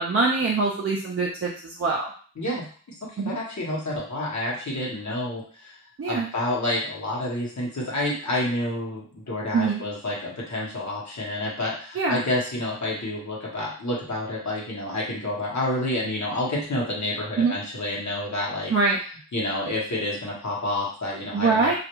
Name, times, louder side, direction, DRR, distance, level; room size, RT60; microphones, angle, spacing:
voice 1, 0.0-2.1 3.2-3.4 6.0-6.3 9.5-9.8 12.0-12.2 17.4-17.5 18.7-19.0 21.3-21.8, right 4 dB, 45° right, -2 dB, 0.4 m, -23 dB
voice 2, 2.4-2.7 3.2-5.8 6.1-18.7 19.3-21.8, left 1 dB, 60° left, -4 dB, 1.0 m, -29 dB
2.4 x 2.2 x 2.9 m, 0.43 s
wide cardioid pair, 75°, 33 cm